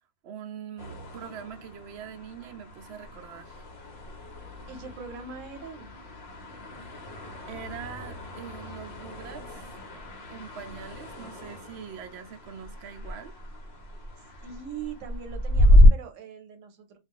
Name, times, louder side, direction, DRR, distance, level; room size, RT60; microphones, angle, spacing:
voice 1, 0.2-3.7 6.8-6.9 7.5-9.8 10.3-13.3, right 8 dB, 65° right, 0.8 m, -43 dB
sound 1, 0.8-15.9, left 1 dB, 60° left, 1.0 m, -28 dB
voice 2, 4.7-5.9 14.2-17.0, right 6 dB, 90° right, 1.0 m, -41 dB
2.3 x 2.3 x 3.5 m
omnidirectional pair, 1.3 m